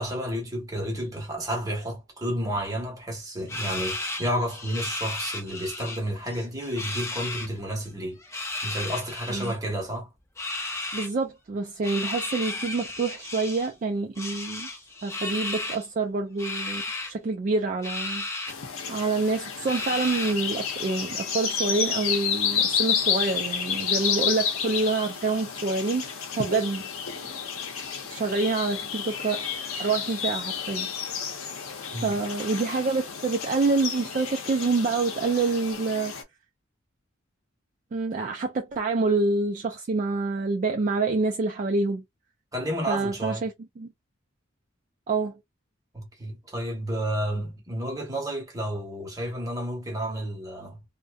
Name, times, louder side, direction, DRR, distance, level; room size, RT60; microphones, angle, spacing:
voice 1, 0.0-8.2 8.6-10.1 31.9-32.2 42.5-43.5 45.9-50.8, equal, 15° right, 0.9 m, -31 dB
sound 1, 3.5-6.0 6.3-7.5 8.2-9.6 10.4-11.1 11.8-13.7 14.2-15.8 16.4-17.1 17.8-18.5 19.0-19.1 19.7-20.5, left 2 dB, 15° left, 0.5 m, -34 dB
voice 2, 10.9-14.7 15.0-16.8 17.1-18.2 18.9-26.9 28.1-29.4 29.8-30.9 32.0-36.1 37.9-42.0 42.9-43.5 43.8-43.9 45.1-45.4, right 3 dB, 40° right, 0.3 m, -27 dB
sound 2, 18.5-36.2, left 7 dB, 85° left, 0.6 m, -31 dB
2.6 x 2.1 x 2.3 m
head